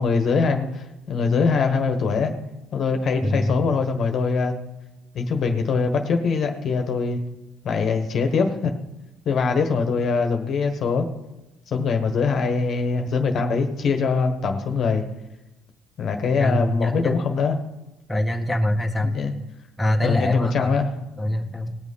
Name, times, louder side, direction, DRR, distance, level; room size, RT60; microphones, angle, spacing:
voice 1, 0.0-2.3 2.7-4.5 5.1-7.2 7.6-8.7 9.2-11.0 11.7-15.0 16.0-17.6 19.0-19.3 20.0-20.9, left 4 dB, 55° left, 5 dB, 1.3 m, -22 dB
voice 2, 3.2-3.5 16.4-17.1 18.1-19.1 19.8-20.7 21.2-21.8, left 1 dB, 10° left, 1 dB, 1.7 m, -24 dB
19.0 x 6.4 x 5.5 m, 0.98 s
supercardioid pair, 75°, 0 cm